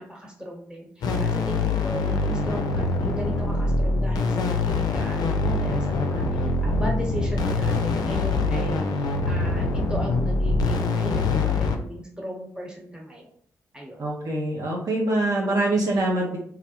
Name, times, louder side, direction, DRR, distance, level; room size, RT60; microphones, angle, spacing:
voice 1, 0.0-13.2 13.7-14.0, equal, 10° right, -2 dB, 1.0 m, -36 dB
sound 1, 1.0-11.8, left 3 dB, 70° left, 0.3 m, -24 dB
voice 2, 14.0-16.4, right 2 dB, 55° right, -2 dB, 0.5 m, -24 dB
2.4 x 2.1 x 2.8 m, 0.64 s
hypercardioid pair, 40°, 7 cm